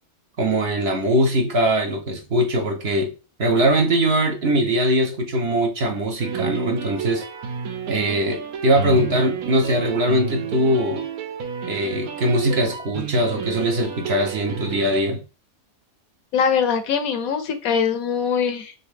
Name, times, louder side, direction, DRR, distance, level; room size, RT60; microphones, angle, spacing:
voice 1, 0.4-3.1 3.4-7.2 7.9-11.0 11.7-15.2, right 1 dB, 50° right, 2 dB, 0.9 m, -21 dB
sound 1, 6.2-15.0, right 7 dB, 75° right, 1.2 m, -31 dB
voice 2, 16.3-18.7, left 7 dB, 75° left, 9 dB, 1.1 m, -22 dB
4.0 x 3.5 x 3.3 m, 0.32 s
omnidirectional pair, 1.5 m